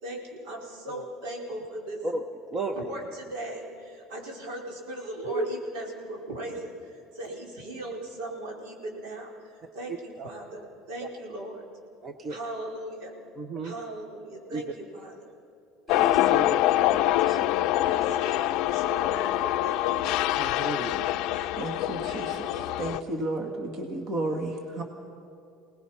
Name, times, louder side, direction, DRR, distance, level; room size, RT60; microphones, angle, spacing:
voice 1, 0.0-2.0 2.8-11.6 12.3-13.1 13.6-15.3 17.8-20.1 20.8-21.7 22.1-22.8, right 1 dB, 80° right, 0 dB, 4.4 m, -39 dB
voice 2, 2.0-2.8 5.3-5.5 10.2-10.3 11.0-11.1 12.0-12.4 13.4-13.7 14.5-14.6 15.9-17.4 20.4-20.9, right 3 dB, 20° right, 7 dB, 0.8 m, -34 dB
sound 1, 15.9-23.0, left 14 dB, 55° left, 0.5 m, -25 dB
voice 3, 21.6-22.5 22.8-24.8, right 2 dB, 40° right, 3 dB, 1.9 m, -32 dB
26.0 x 19.0 x 5.8 m, 2.6 s
cardioid pair, 175°, 0 cm